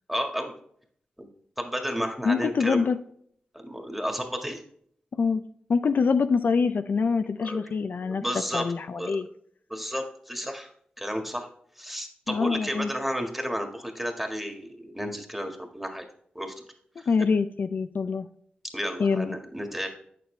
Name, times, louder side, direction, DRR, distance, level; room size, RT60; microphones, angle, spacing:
voice 1, 0.1-0.5 1.2-1.3 1.6-2.9 3.5-4.6 7.4-7.6 8.1-8.7 9.0-9.2 9.7-10.7 11.0-11.5 11.8-16.1 16.4-16.6 17.0-17.1 18.7-19.9, equal, 5° right, 4 dB, 1.8 m, -32 dB
voice 2, 2.2-3.0 5.2-5.4 5.7-8.2 8.5-9.3 12.3-12.9 17.1-18.3 19.0-19.4, left 5 dB, 70° left, 9 dB, 0.5 m, -25 dB
8.6 x 6.7 x 3.3 m, 0.63 s
cardioid pair, 55°, 3 cm